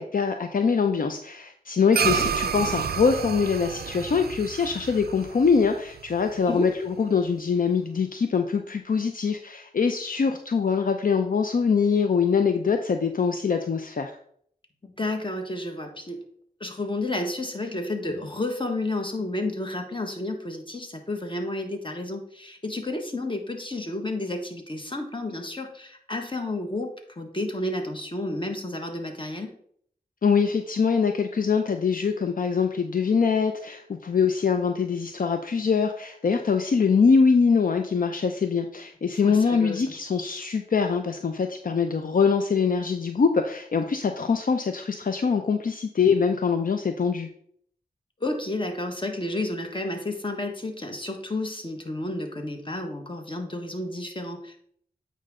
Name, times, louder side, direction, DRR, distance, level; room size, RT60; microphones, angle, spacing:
voice 1, 0.0-14.2 30.2-47.3, left 5 dB, 60° left, 6 dB, 0.6 m, -23 dB
sound 1, 1.9-6.6, right 7 dB, 75° right, 0.5 m, -29 dB
voice 2, 15.0-16.2 16.6-29.5 39.2-39.8 48.2-54.6, left 2 dB, 30° left, 4 dB, 1.5 m, -31 dB
8.7 x 5.2 x 3.7 m, 0.63 s
cardioid pair, 55°, 16 cm